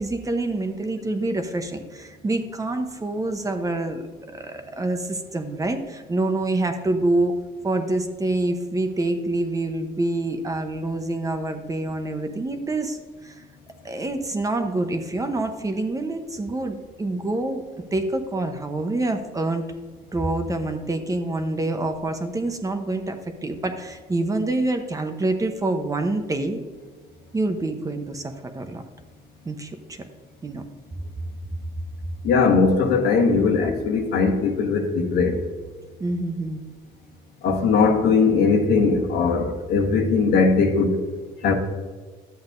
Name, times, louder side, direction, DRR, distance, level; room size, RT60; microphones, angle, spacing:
voice 1, 0.0-4.0 4.3-7.4 7.6-13.0 13.2-13.3 13.8-19.7 20.1-26.6 27.3-28.8 29.5-30.0 30.4-30.6 36.0-36.6, right 2 dB, 20° right, 0.9 m, -26 dB
voice 2, 32.2-35.4 37.4-41.0 41.4-41.5, left 4 dB, 75° left, 1.4 m, -19 dB
11.5 x 7.9 x 2.6 m
cardioid pair, 110°, 17 cm